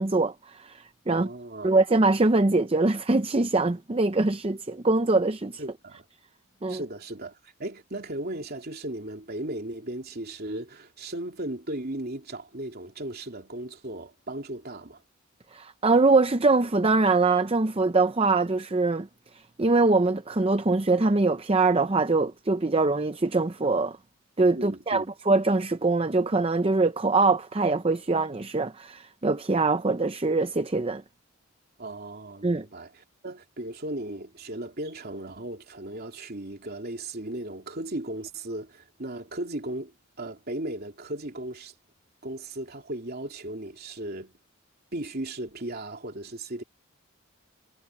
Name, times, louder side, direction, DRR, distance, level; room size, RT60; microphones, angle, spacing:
voice 1, 0.0-1.3 1.6-5.6 6.6-6.8 15.5-19.1 19.6-24.0 24.4-31.0 32.4-32.6, right 3 dB, 25° right, 0.6 m, -23 dB
voice 2, 1.1-1.7 5.6-6.0 6.7-15.0 24.5-25.0 31.8-39.9 40.2-41.7 42.2-44.3 44.9-46.6, right 1 dB, 45° right, 3.3 m, -36 dB
head